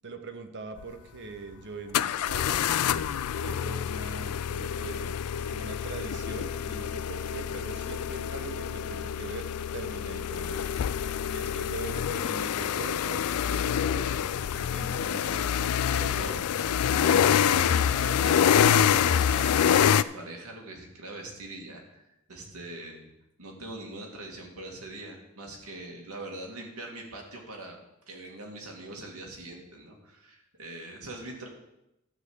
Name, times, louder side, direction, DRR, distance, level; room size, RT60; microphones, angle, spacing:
voice 1, 0.0-5.1 5.5-10.7 11.3-16.4, right 3 dB, 55° right, 7 dB, 1.0 m, -42 dB
sound 1, 0.8-0.9 1.9-20.0, left 8 dB, 85° left, 0.4 m, -26 dB
voice 2, 15.9-23.1 23.4-27.8 28.1-31.5, right 2 dB, 80° right, 0 dB, 2.3 m, -42 dB
12.0 x 4.3 x 8.1 m, 0.88 s
head